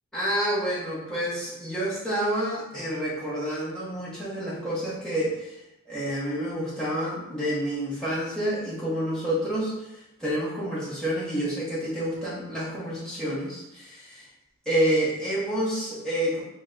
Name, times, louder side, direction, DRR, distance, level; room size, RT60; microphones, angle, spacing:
voice 1, 0.1-5.6 5.9-9.7 10.2-14.3 14.6-16.4, right 1 dB, 5° left, -9 dB, 1.2 m, -28 dB
3.9 x 2.3 x 3.8 m, 0.91 s
head